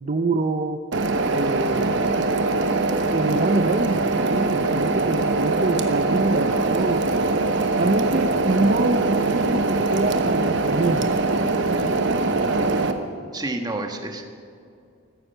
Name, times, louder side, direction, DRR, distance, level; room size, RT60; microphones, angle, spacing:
voice 1, 0.0-0.8 1.3-2.1 3.1-7.3 7.8-11.1, right 2 dB, 40° right, 6 dB, 0.6 m, -25 dB
sound 1, 0.9-12.9, right 3 dB, 60° right, 1.1 m, -22 dB
voice 2, 13.3-14.2, right 2 dB, 20° right, 4 dB, 1.4 m, -29 dB
14.5 x 14.5 x 6.7 m, 2.4 s
head